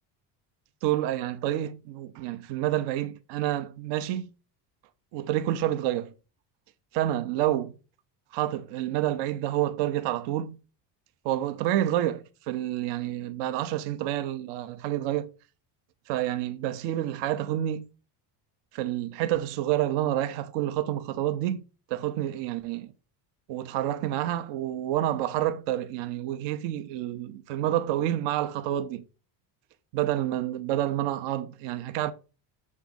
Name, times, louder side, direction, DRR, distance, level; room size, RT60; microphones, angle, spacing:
voice 1, 0.8-4.3 5.1-6.1 6.9-7.7 8.3-10.6 11.2-15.3 16.1-17.9 18.7-22.9 23.5-29.0 29.9-32.1, right 13 dB, 70° right, 0.7 m, -28 dB
7.4 x 3.6 x 4.0 m
cardioid pair, 150°, 45 cm